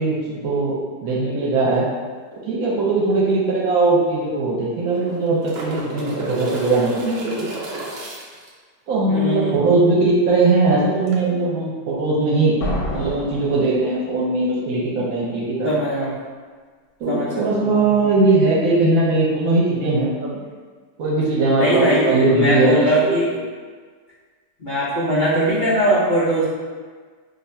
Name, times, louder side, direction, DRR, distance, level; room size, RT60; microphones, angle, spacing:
voice 1, 0.0-1.8 2.5-7.5 8.9-12.6 12.9-15.8 17.0-20.4 21.0-23.1, right 3 dB, 65° right, -4 dB, 1.0 m, -19 dB
sound 1, 3.3-3.4 3.7-3.8 4.8-8.5 11.1-11.2, right 1 dB, 80° right, 0.5 m, -32 dB
voice 2, 9.1-9.6 15.6-16.2 17.1-18.0 21.5-23.3 24.6-26.4, equal, 85° left, -9 dB, 0.4 m, -21 dB
sound 2, 12.6-14.4, equal, 60° left, 0.8 m, -28 dB
2.7 x 2.4 x 4.2 m, 1.5 s
omnidirectional pair, 1.8 m